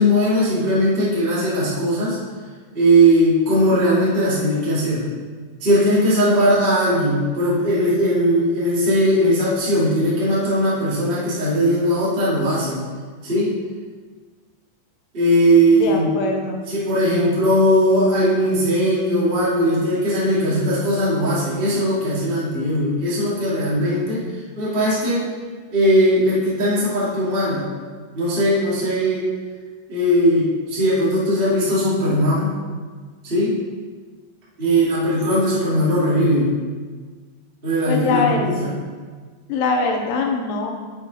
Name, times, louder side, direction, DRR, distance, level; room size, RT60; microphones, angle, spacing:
voice 1, 0.0-2.2 2.7-5.0 5.6-12.8 13.2-13.5 15.1-16.1 16.7-24.2 24.5-25.3 25.7-27.7 28.1-29.2 29.9-32.5 33.2-33.5 34.6-36.5 37.6-38.7, equal, 80° right, -9 dB, 0.5 m, -19 dB
voice 2, 15.7-16.6 37.9-38.5 39.5-40.7, left 4 dB, 90° left, 2 dB, 3.2 m, -22 dB
7.9 x 6.4 x 4.0 m, 1.5 s
omnidirectional pair, 5.6 m